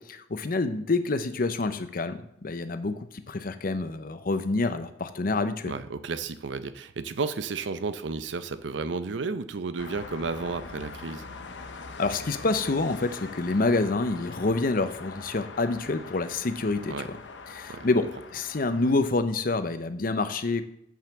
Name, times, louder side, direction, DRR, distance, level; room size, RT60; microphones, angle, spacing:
voice 1, 0.1-5.8 12.0-16.9 17.5-20.6, left 3 dB, 50° left, 10 dB, 0.7 m, -27 dB
voice 2, 5.7-11.2 16.9-17.1 17.7-17.9, right 4 dB, 85° right, 12 dB, 0.6 m, -32 dB
sound 1, 9.8-18.9, left 4 dB, 80° left, 0.9 m, -43 dB
7.6 x 5.6 x 7.2 m, 0.77 s
head